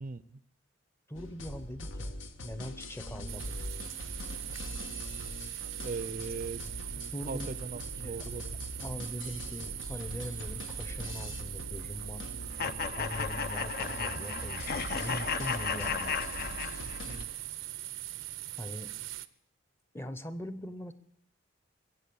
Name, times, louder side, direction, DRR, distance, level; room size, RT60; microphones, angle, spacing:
voice 1, 0.0-0.4 5.8-6.7 7.3-8.6, right 4 dB, 45° right, 16 dB, 0.5 m, -39 dB
sound 1, 1.1-17.2, left 1 dB, 80° left, 1.4 m, -42 dB
voice 2, 1.1-2.2 2.4-3.6 7.1-7.5 8.0-8.2 8.8-12.2 13.0-14.7 15.0-16.4 18.6-18.9 19.9-20.9, equal, 15° left, 12 dB, 0.7 m, -41 dB
sound 2, 3.3-19.3, right 15 dB, 85° right, 0.6 m, -41 dB
sound 3, 12.6-17.2, left 6 dB, 50° left, 0.6 m, -34 dB
22.0 x 7.5 x 6.9 m, 0.68 s
head